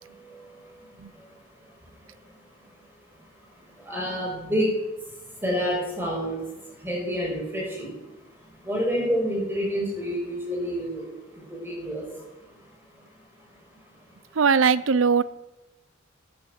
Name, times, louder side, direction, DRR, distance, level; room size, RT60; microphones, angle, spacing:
voice 1, 3.9-4.7 5.4-6.4 6.8-7.9 8.6-11.0 11.6-12.0, equal, 10° right, -2 dB, 5.8 m, -27 dB
voice 2, 14.4-15.2, right 5 dB, 70° right, 18 dB, 0.6 m, -20 dB
15.0 x 9.5 x 7.8 m, 1.0 s
head